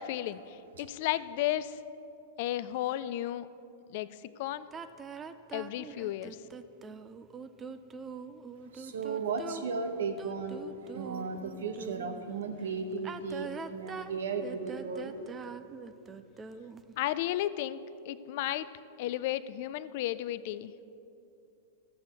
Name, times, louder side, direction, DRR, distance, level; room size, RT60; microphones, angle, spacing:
voice 1, 0.0-1.8 2.4-3.5 3.9-4.7 5.5-6.4 17.0-18.7 19.0-20.7, left 13 dB, 55° left, 16 dB, 0.4 m, -33 dB
sound 1, 4.7-12.2 12.9-16.9, right 5 dB, 20° right, 0.4 m, -43 dB
voice 2, 8.7-15.4, right 4 dB, 75° right, 7 dB, 0.9 m, -35 dB
13.5 x 7.8 x 4.2 m, 2.7 s
hypercardioid pair, 105°, 0 cm